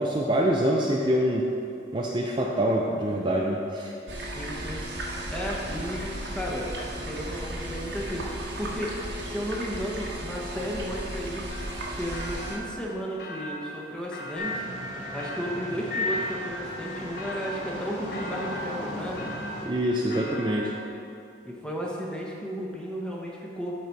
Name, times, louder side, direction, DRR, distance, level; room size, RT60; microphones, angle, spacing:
voice 1, 0.0-1.5 1.9-3.9 19.6-20.7, equal, 25° right, -1 dB, 0.4 m, -25 dB
sound 1, 4.1-12.6, right 1 dB, 65° right, 1.2 m, -35 dB
voice 2, 4.2-4.8 5.3-6.7 7.0-8.9 9.2-11.6 12.0-14.6 15.1-19.3 20.1-20.4 21.4-23.7, equal, 5° left, -3 dB, 1.0 m, -34 dB
sound 2, 11.5-20.9, equal, 55° left, 0.8 m, -40 dB
sound 3, 14.4-19.7, left 1 dB, 90° left, 1.8 m, -35 dB
12.5 x 4.1 x 4.6 m, 2.6 s
head